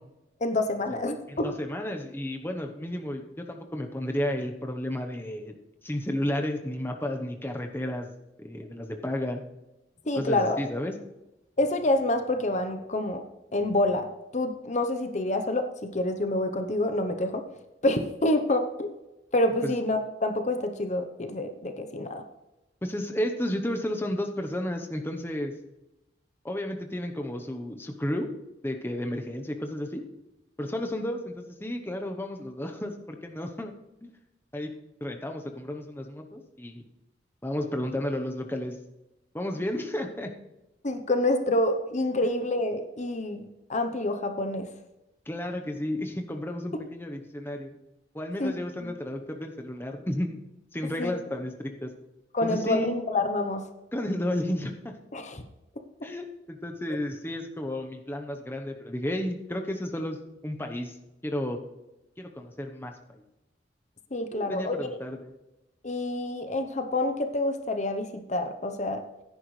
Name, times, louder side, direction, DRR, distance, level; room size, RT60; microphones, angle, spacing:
voice 1, 0.4-1.5 10.1-10.6 11.6-13.2 13.5-14.1 14.3-17.4 17.8-18.9 19.3-22.2 40.8-44.7 48.4-48.5 48.8-48.9 51.0-51.1 52.3-53.7 55.1-55.4 64.1-64.9 65.8-69.0, left 1 dB, 40° left, 7 dB, 0.8 m, -27 dB
voice 2, 1.3-5.6 5.8-8.1 8.4-9.4 10.1-10.9 19.6-19.8 22.8-25.6 26.4-28.3 28.6-30.0 30.6-33.7 34.0-34.1 34.5-34.7 35.0-36.8 37.4-38.8 39.3-40.3 45.3-47.7 48.1-50.4 50.7-51.9 52.4-52.9 53.9-54.9 56.0-60.2 60.4-61.0 61.2-61.6 62.2-63.2 64.3-65.3, left 1 dB, 10° left, 4 dB, 0.9 m, -32 dB
15.5 x 10.0 x 3.2 m, 0.95 s
head